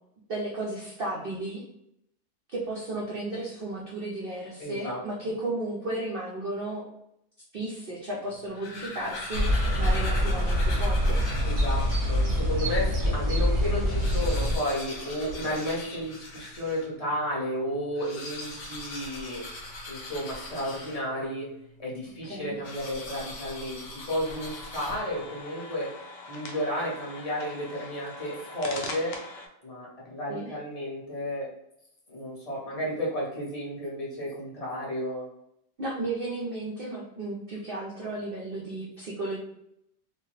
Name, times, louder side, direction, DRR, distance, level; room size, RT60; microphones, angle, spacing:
voice 1, 0.3-1.6 2.5-6.9 7.5-9.4 9.7-11.2 22.2-22.5 30.3-30.5 35.8-39.4, right 2 dB, 80° right, -4 dB, 0.5 m, -34 dB
voice 2, 4.6-5.0 11.4-19.4 19.9-21.5 21.8-25.9 26.3-29.2 29.6-31.5 32.1-35.3, equal, 30° left, -5 dB, 0.7 m, -32 dB
sound 1, 8.4-12.5 13.1-13.2 13.4-13.5 13.8-16.9 17.9-21.3 22.6-25.3, left 2 dB, 55° left, 0.9 m, -40 dB
sound 2, 9.3-14.6, equal, 45° right, 0.7 m, -25 dB
sound 3, 24.2-29.5, left 2 dB, 85° left, 0.5 m, -42 dB
2.8 x 2.2 x 3.1 m, 0.78 s
omnidirectional pair, 1.7 m